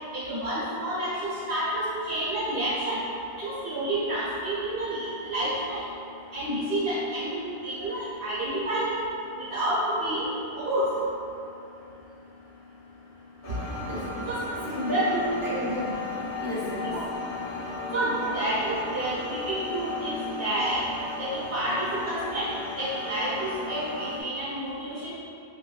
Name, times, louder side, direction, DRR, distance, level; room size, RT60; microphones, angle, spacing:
voice 1, 0.1-3.0 3.4-5.8 6.3-8.9 9.5-10.9 14.3-14.4 14.8-15.1 16.8-17.0 17.9-20.8 21.2-22.5 22.8-25.1, right 1 dB, 60° right, -10 dB, 0.9 m, -29 dB
sound 1, 13.4-24.2, left 2 dB, 60° left, 0.8 m, -36 dB
voice 2, 14.5-17.0, equal, 20° right, -10 dB, 1.0 m, -32 dB
5.0 x 2.2 x 2.3 m, 2.7 s
omnidirectional pair, 1.1 m